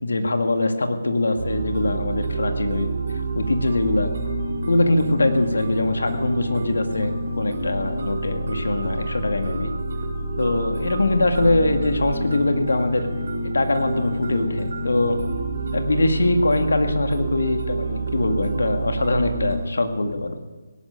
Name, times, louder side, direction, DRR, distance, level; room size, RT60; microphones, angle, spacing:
voice 1, 0.0-2.9 3.4-4.1 4.7-9.7 10.4-13.1 13.5-15.2 15.7-20.4, left 2 dB, 75° left, 6 dB, 2.1 m, -22 dB
sound 1, 1.4-19.5, right 2 dB, 60° right, 4.9 m, -28 dB
17.5 x 12.0 x 6.6 m, 1.3 s
figure-of-eight pair, 155°, 0 cm